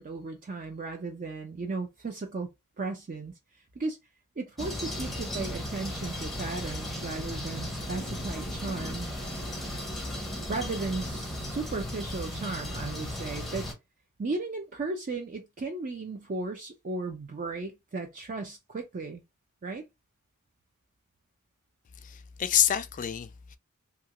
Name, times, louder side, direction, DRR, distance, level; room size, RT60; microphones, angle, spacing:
voice 1, 0.0-2.5 2.8-3.3 3.8-4.0 4.4-9.1 10.5-13.7 14.2-19.2 19.6-19.8, right 3 dB, 35° right, 0.4 m, -35 dB
sound 1, 4.6-13.7, left 1 dB, ahead, 0.7 m, -36 dB
voice 2, 22.0-23.6, left 11 dB, 35° left, 0.3 m, -27 dB
2.8 x 2.4 x 2.8 m
head